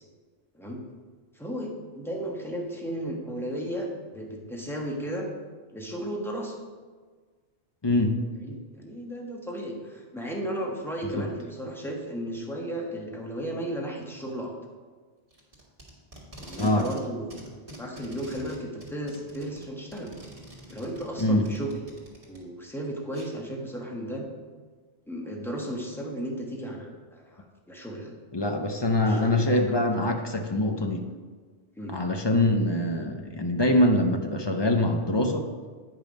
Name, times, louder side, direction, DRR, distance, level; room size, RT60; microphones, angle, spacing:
voice 1, 1.3-5.3 5.7-6.6 8.4-14.5 16.4-17.3 17.8-20.1 20.7-21.8 22.3-24.3 25.1-28.1 29.0-30.1 31.7-32.0, right 1 dB, ahead, -1 dB, 1.2 m, -34 dB
voice 2, 7.8-8.2 11.2-11.3 16.6-16.9 21.2-21.4 28.3-31.1 31.9-35.5, left 1 dB, 30° left, 4 dB, 0.5 m, -24 dB
Packing tape duct tape, 15.3-17.0 17.3-22.4 23.1-23.3, right 1 dB, 30° right, 1.7 m, -46 dB
9.0 x 5.2 x 5.2 m, 1.5 s
omnidirectional pair, 1.2 m